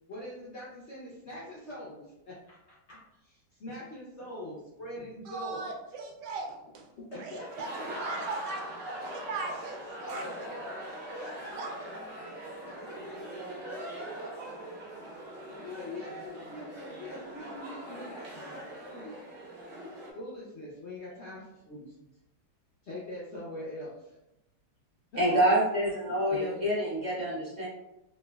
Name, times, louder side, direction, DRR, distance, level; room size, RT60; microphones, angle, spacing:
voice 1, 0.1-5.7 7.0-7.7 10.0-10.7 11.1-11.6 12.9-13.0 13.2-15.0 15.6-19.3 20.1-21.9 22.8-24.1 25.1-25.4 26.3-26.7, left 1 dB, 60° left, -6 dB, 0.7 m, -43 dB
voice 2, 5.2-6.9 7.2-8.8 9.1-10.2 11.6-11.7, right 3 dB, 80° right, 1 dB, 1.2 m, -39 dB
sound 1, 7.3-20.1, right 1 dB, 60° right, 1.1 m, -42 dB
voice 3, 25.2-27.7, right 1 dB, 35° right, -7 dB, 0.8 m, -27 dB
3.3 x 2.4 x 2.2 m, 0.92 s
omnidirectional pair, 1.8 m